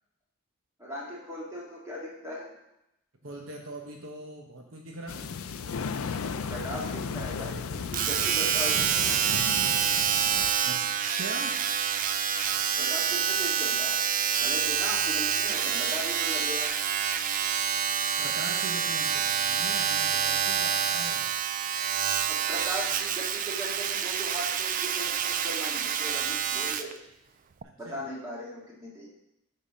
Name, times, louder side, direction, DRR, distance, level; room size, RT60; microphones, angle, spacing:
voice 1, 0.8-2.5 6.5-9.3 12.8-14.0 14.4-16.7 22.3-26.9 27.8-29.1, equal, 15° right, -6 dB, 2.1 m, -38 dB
voice 2, 3.2-5.2 10.6-11.6 18.2-21.3 27.8-28.0, right 2 dB, 65° right, 1 dB, 1.0 m, -41 dB
sound 1, 5.1-10.5, left 5 dB, 85° left, 0.5 m, -35 dB
Domestic sounds home sounds, 7.9-26.9 27.6-27.7, right 8 dB, 40° right, 0.3 m, -27 dB
8.5 x 3.9 x 5.2 m, 0.86 s
head